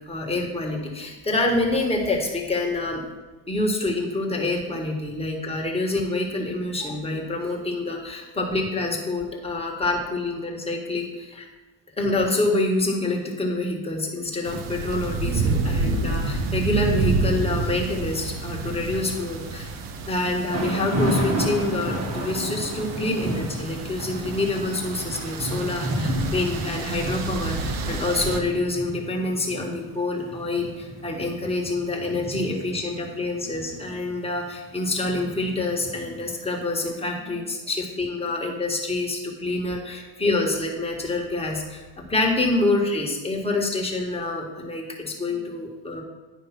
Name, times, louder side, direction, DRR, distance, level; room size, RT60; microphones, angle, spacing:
voice 1, 0.1-3.0 3.5-11.4 12.0-19.7 20.1-41.8 42.1-46.0, left 2 dB, 10° left, -1 dB, 1.3 m, -26 dB
sound 1, 14.4-28.4, right 3 dB, 80° right, 1.1 m, -29 dB
Thunder / Rain, 20.5-36.5, right 1 dB, 35° right, 1.5 m, -32 dB
10.5 x 5.0 x 5.8 m, 1.2 s
cardioid pair, 170°, 48 cm